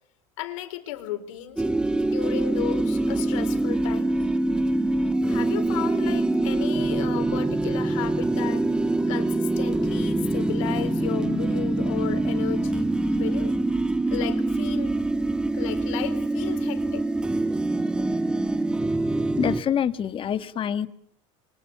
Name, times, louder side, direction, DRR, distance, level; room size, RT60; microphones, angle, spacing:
voice 1, 0.4-1.6 2.0-4.1 5.3-8.7 9.1-13.6 14.1-15.0 15.5-17.0, left 12 dB, 85° left, 7 dB, 4.2 m, -34 dB
sound 1, 1.6-19.6, right 2 dB, 5° right, 1.4 m, -24 dB
voice 2, 19.4-20.9, left 8 dB, 35° left, 11 dB, 1.8 m, -26 dB
29.5 x 24.0 x 7.0 m, 0.65 s
supercardioid pair, 115°, 16 cm